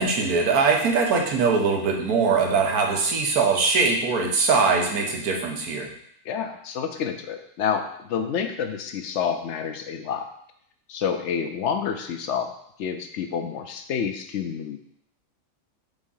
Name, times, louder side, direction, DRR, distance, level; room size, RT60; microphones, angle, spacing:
voice 1, 0.0-5.9, right 4 dB, 90° right, 1 dB, 1.5 m, -22 dB
voice 2, 6.2-10.3 10.9-12.5 12.8-14.8, left 7 dB, 65° left, 6 dB, 0.8 m, -28 dB
5.2 x 3.6 x 5.5 m, 0.70 s
omnidirectional pair, 1.5 m